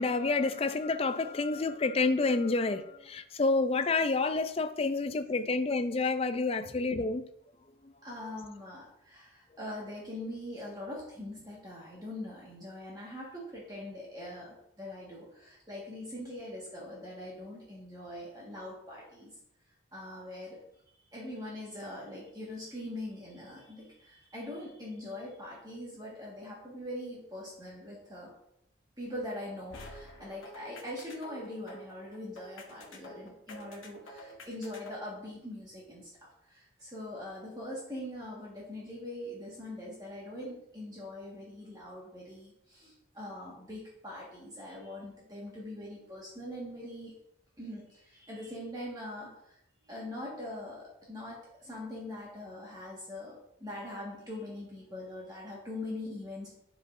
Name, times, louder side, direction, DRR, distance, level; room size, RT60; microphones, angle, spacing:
voice 1, 0.0-7.2, left 3 dB, 30° left, 10 dB, 0.4 m, -29 dB
voice 2, 8.0-19.3 19.9-20.6 21.1-28.3 29.0-36.1 36.5-47.1 47.6-49.6 49.8-56.6, left 1 dB, 20° right, -5 dB, 1.5 m, -42 dB
sound 1, 29.7-35.2, equal, 85° left, 1.1 m, -49 dB
10.5 x 4.9 x 2.5 m, 0.77 s
head